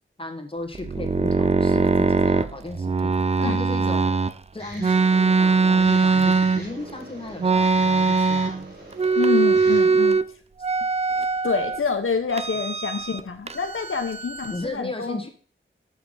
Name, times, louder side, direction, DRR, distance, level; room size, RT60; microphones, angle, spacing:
voice 1, 0.2-3.1 3.4-4.2 4.5-8.7 14.5-15.3, left 2 dB, 25° left, 4 dB, 1.6 m, -35 dB
sound 1, 0.7-4.3 4.8-6.9 7.4-8.7 8.9-10.2 10.6-11.8 12.3-13.2 13.5-14.7, right 4 dB, 30° right, 0.4 m, -21 dB
sound 2, 4.6-9.8, right 1 dB, 50° right, 3.6 m, -41 dB
voice 2, 9.1-10.2 11.4-15.3, left 5 dB, 80° left, 6 dB, 1.0 m, -27 dB
6.7 x 5.8 x 5.6 m, 0.42 s
wide cardioid pair, 70°, 21 cm